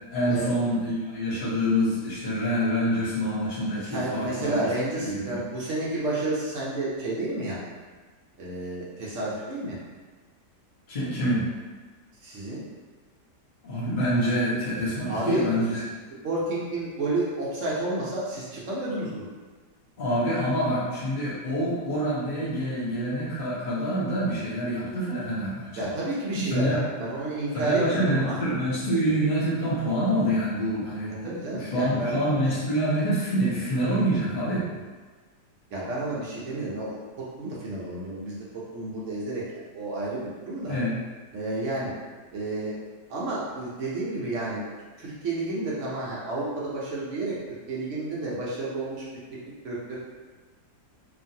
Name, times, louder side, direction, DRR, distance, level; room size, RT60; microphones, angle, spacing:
voice 1, 0.1-4.6 5.0-5.4 10.9-11.4 13.6-15.8 20.0-25.9 26.3-26.8 27.5-34.7 40.7-40.9, equal, 40° left, -10 dB, 0.8 m, -26 dB
voice 2, 3.8-7.6 8.4-9.8 12.2-12.6 15.1-15.6 16.2-19.3 25.8-28.4 31.2-32.2 33.4-33.6 35.7-38.4 38.7-39.4 39.7-40.8 41.3-41.9 42.3-42.8 43.1-44.6 45.0-49.0 49.3-49.4 49.6-50.0, right 2 dB, 65° right, -6 dB, 0.7 m, -31 dB
3.0 x 2.5 x 2.6 m, 1.4 s
omnidirectional pair, 1.8 m